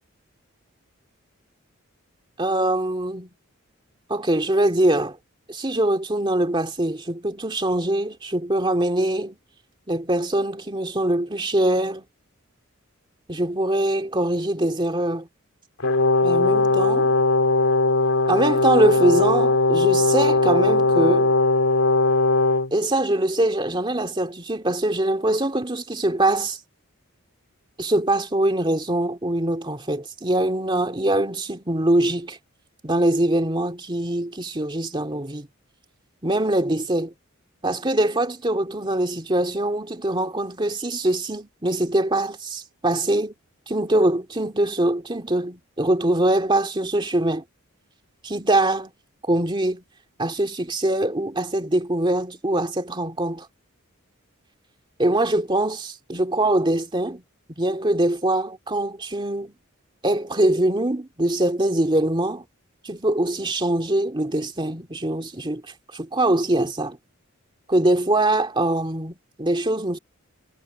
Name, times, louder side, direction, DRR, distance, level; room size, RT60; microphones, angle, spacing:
voice 1, 2.4-3.3 4.1-5.2 5.5-9.4 9.9-12.0 13.3-15.3 16.2-17.1 18.3-21.3 22.7-26.6 27.8-32.4 32.8-35.5 36.2-37.1 37.6-43.3 43.7-47.4 48.2-48.9 49.3-49.8 50.2-53.5 55.0-57.2 57.6-59.5 60.0-62.4 62.8-65.6 65.9-67.0 67.7-70.0, right 1 dB, 20° right, 2.3 m, -23 dB
Brass instrument, 15.8-22.7, left 2 dB, 85° left, 3.1 m, -19 dB
head